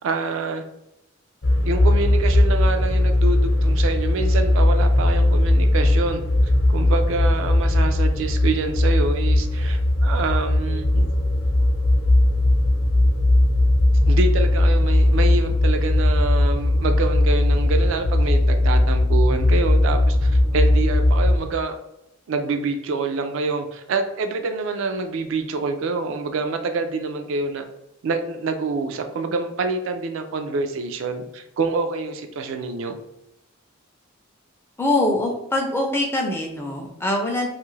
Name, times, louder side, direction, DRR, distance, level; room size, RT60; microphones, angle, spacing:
voice 1, 0.0-0.6 1.7-6.2 6.7-11.1 14.1-21.8 22.3-27.6 28.0-33.0, right 3 dB, 65° right, 6 dB, 0.3 m, -26 dB
sound 1, 1.4-21.4, left 1 dB, 55° left, 0.8 m, -18 dB
voice 2, 34.8-37.5, left 1 dB, 10° left, 0 dB, 0.4 m, -23 dB
2.6 x 2.4 x 3.1 m, 0.86 s
head